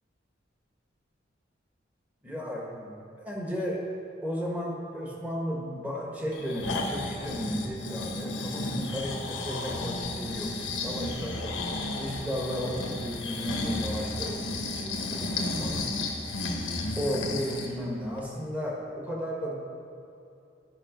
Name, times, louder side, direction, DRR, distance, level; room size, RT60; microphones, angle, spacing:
voice 1, 2.2-3.8 4.2-15.9 16.9-19.6, equal, 10° right, -3 dB, 1.4 m, -34 dB
Breathing, 6.3-17.7 18.2-18.3, left 2 dB, 85° left, 1.1 m, -33 dB
11.0 x 5.4 x 5.1 m, 2.7 s
head